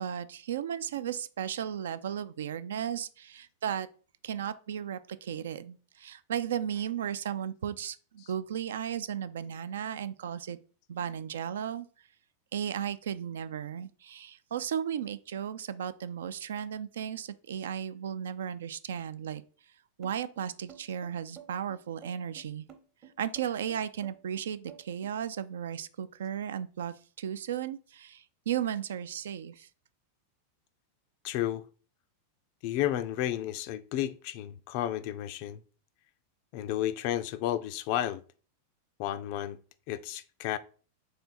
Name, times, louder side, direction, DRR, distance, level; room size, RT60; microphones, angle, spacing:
voice 1, 0.0-3.9 4.2-10.6 10.9-11.9 12.5-19.4 20.0-22.7 23.2-29.7, right 9 dB, 60° right, 0.3 m, -35 dB
sound 1, 20.0-25.2, right 8 dB, 30° right, 0.9 m, -52 dB
voice 2, 31.2-31.6 32.6-35.6 36.5-38.2 39.0-39.6 39.9-40.6, left 12 dB, 45° left, 0.3 m, -32 dB
3.6 x 3.3 x 4.2 m
figure-of-eight pair, 90°, 0 cm